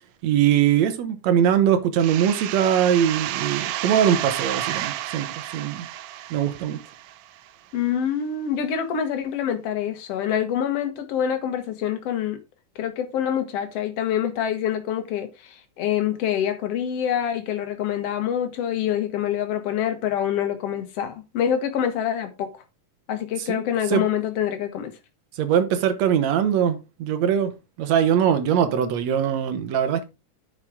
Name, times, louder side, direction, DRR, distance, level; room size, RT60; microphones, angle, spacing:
voice 1, 0.2-5.9 6.3-6.8 23.5-23.6 23.9-24.0 25.4-27.5 27.8-30.0, right 9 dB, 65° right, 2.1 m, -21 dB
sound 1, 2.0-7.5, right 13 dB, 90° right, 2.3 m, -31 dB
voice 2, 7.7-12.4 12.8-22.5 23.1-24.9, left 9 dB, 55° left, 2.2 m, -26 dB
9.6 x 6.3 x 3.6 m
omnidirectional pair, 3.7 m